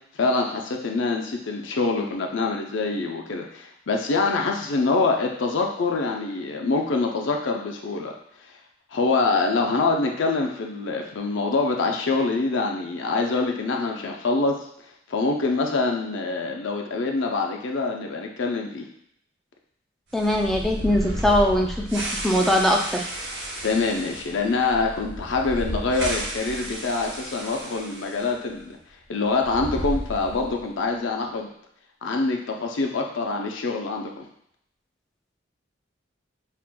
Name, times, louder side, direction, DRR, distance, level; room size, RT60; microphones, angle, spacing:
voice 1, 0.1-8.1 8.9-14.6 15.1-18.9 23.6-28.8 29.1-31.5 32.0-34.2, left 3 dB, 75° left, 2 dB, 0.5 m, -25 dB
voice 2, 20.1-23.1, left 1 dB, ahead, 1 dB, 0.3 m, -21 dB
sound 1, 20.1-28.3 28.6-28.7 29.3-30.7, right 1 dB, 65° right, 0.8 m, -33 dB
5.8 x 2.5 x 2.2 m, 0.72 s
head